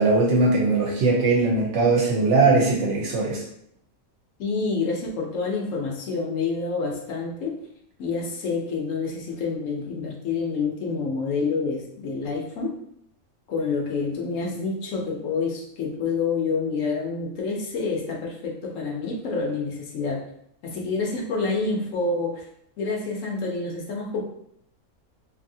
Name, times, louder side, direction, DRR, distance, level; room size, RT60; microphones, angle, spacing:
voice 1, 0.0-3.4, right 3 dB, 60° right, -3 dB, 0.9 m, -20 dB
voice 2, 4.4-7.5 8.0-12.7 13.5-20.2 20.6-22.4 22.8-24.2, left 4 dB, 70° left, 0 dB, 0.9 m, -28 dB
2.7 x 2.7 x 2.6 m, 0.72 s
omnidirectional pair, 1.5 m